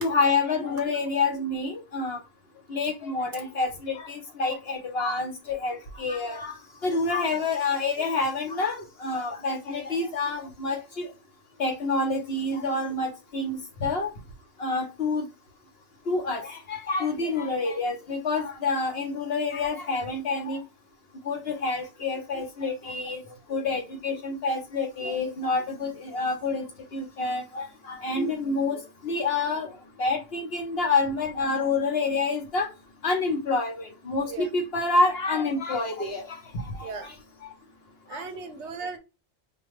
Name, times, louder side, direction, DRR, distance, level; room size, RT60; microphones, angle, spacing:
voice 1, 0.0-2.2 2.7-6.5 6.8-11.1 11.6-14.1 14.6-15.2 16.1-20.6 21.3-23.2 23.5-26.6 26.9-29.7 30.0-32.7 33.0-36.4 36.8-36.9, left 3 dB, 55° left, 1.0 m, -28 dB
voice 2, 38.1-39.0, right 4 dB, 65° right, 0.8 m, -37 dB
5.0 x 2.2 x 3.1 m
omnidirectional pair, 1.4 m